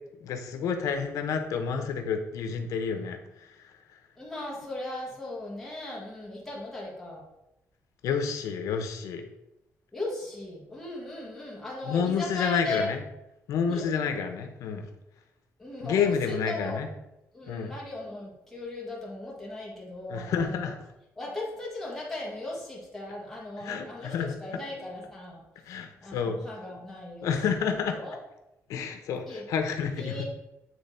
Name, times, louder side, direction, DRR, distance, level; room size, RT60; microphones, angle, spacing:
voice 1, 0.2-3.2 8.0-9.3 11.8-13.0 13.5-14.9 15.8-16.9 17.5-17.7 20.1-20.8 23.6-24.3 25.7-26.4 27.2-28.0 28.7-30.2, left 6 dB, 80° left, 6 dB, 0.9 m, -29 dB
voice 2, 4.2-7.2 9.9-12.9 13.7-13.9 15.6-16.8 17.3-20.7 21.2-25.4 26.0-28.2 29.3-29.5 30.0-30.2, left 2 dB, 5° left, -5 dB, 1.9 m, -37 dB
8.9 x 3.4 x 4.3 m, 0.90 s
cardioid pair, 175°, 6 cm